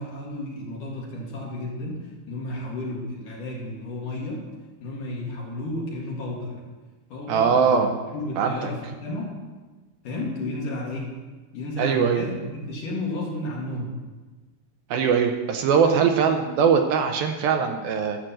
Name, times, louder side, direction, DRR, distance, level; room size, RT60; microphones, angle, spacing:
voice 1, 0.0-4.5 4.8-6.6 7.1-7.8 8.1-9.4 10.0-11.1 11.5-14.0 15.8-16.1, left 1 dB, 60° left, -3 dB, 3.2 m, -32 dB
voice 2, 7.3-7.9 8.4-8.5 11.8-12.2 14.9-18.2, right 6 dB, 80° right, 5 dB, 2.4 m, -21 dB
11.5 x 6.3 x 7.5 m, 1.3 s
omnidirectional pair, 4.6 m